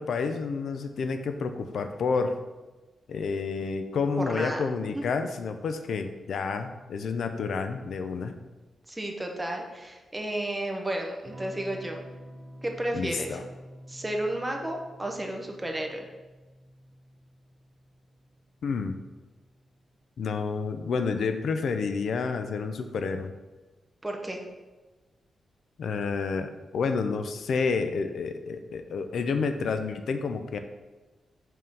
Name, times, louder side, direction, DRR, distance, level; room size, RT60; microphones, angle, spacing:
voice 1, 0.0-2.4 3.1-8.3 12.9-13.4 18.6-19.0 20.2-23.3 25.8-30.6, left 5 dB, 65° left, 8 dB, 0.4 m, -29 dB
voice 2, 4.2-4.6 4.9-5.0 8.9-12.0 12.6-13.4 13.9-16.1 24.0-24.4, right 1 dB, 10° right, 2 dB, 0.7 m, -32 dB
Electric guitar / Strum, 11.2-19.5, equal, 40° right, 1.9 m, -48 dB
5.5 x 3.6 x 5.3 m, 1.2 s
wide cardioid pair, 170°, 0 cm